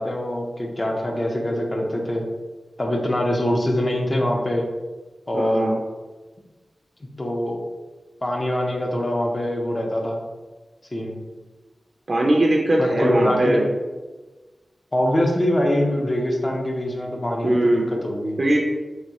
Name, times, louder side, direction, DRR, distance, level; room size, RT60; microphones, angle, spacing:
voice 1, 0.0-2.2 2.8-4.7 5.3-5.7 7.2-7.6 8.2-10.2 10.9-11.2 12.8-13.6 14.9-18.4, left 1 dB, 35° left, 0 dB, 0.7 m, -23 dB
voice 2, 5.3-5.8 12.1-13.7 17.4-17.9 18.4-18.6, right 1 dB, 50° right, -2 dB, 0.4 m, -20 dB
4.0 x 2.3 x 2.9 m, 1.2 s
wide cardioid pair, 70°, 0 cm